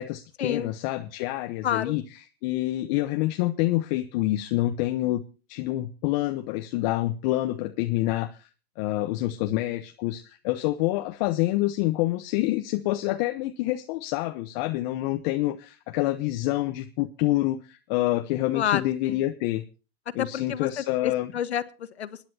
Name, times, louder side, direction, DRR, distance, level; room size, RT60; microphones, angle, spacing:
voice 1, 0.0-5.2 5.5-8.5 8.8-19.6 20.1-21.3, left 16 dB, 45° left, 7 dB, 1.0 m, -27 dB
voice 2, 1.6-1.9 18.5-19.2 20.2-22.3, left 9 dB, 85° left, 13 dB, 1.3 m, -29 dB
25.0 x 10.5 x 2.8 m, 0.34 s
hypercardioid pair, 125°, 32 cm